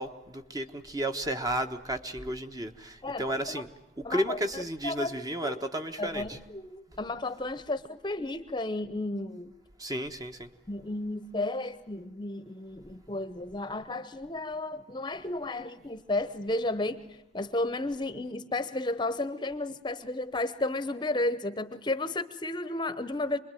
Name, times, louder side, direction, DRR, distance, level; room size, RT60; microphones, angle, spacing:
voice 1, 0.0-3.7 4.0-6.4 6.9-7.0 9.8-10.5, right 1 dB, 20° right, 6 dB, 1.2 m, -33 dB
voice 2, 3.0-3.6 4.0-5.1 5.4-5.6 6.0-9.5 10.7-17.0 17.3-23.4, left 2 dB, 25° left, 12 dB, 0.9 m, -33 dB
26.5 x 21.5 x 9.2 m, 0.85 s
head